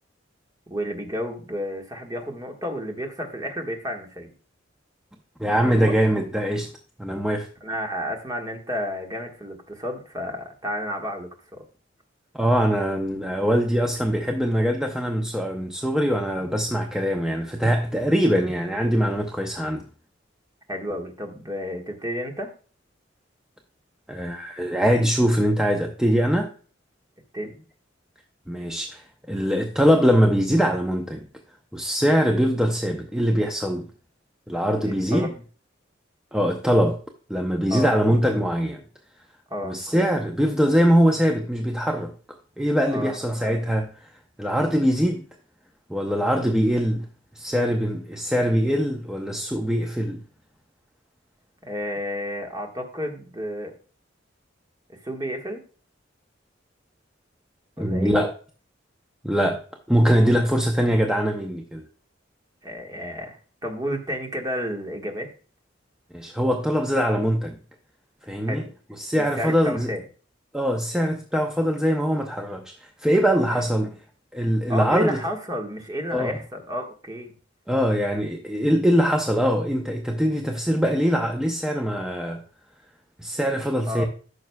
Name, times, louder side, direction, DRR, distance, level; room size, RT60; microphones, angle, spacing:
voice 1, 0.7-4.3 5.8-6.0 7.6-11.6 20.7-22.5 27.3-27.6 34.9-35.3 37.7-37.9 39.5-39.8 42.9-43.2 51.6-53.7 54.9-55.6 57.8-58.2 62.6-63.4 63.6-65.3 68.5-68.7 69.2-70.0 73.5-73.7 74.7-77.3 83.9-84.1, equal, 20° right, 1.5 m, -31 dB
voice 2, 5.4-6.7 7.0-7.5 12.3-19.8 24.1-26.5 28.5-29.0 29.3-31.3 31.7-33.9 34.5-35.3 36.3-37.0 37.3-38.8 39.6-44.1 44.4-45.2 45.9-47.1 47.4-50.2 57.8-58.3 59.2-59.6 59.9-61.8 66.1-67.6 68.3-68.6 69.0-69.9 70.5-72.7 73.0-74.0 74.3-75.2 76.1-76.4 77.7-82.4 83.2-84.0, equal, 5° right, 0.6 m, -22 dB
14.0 x 6.3 x 2.2 m
head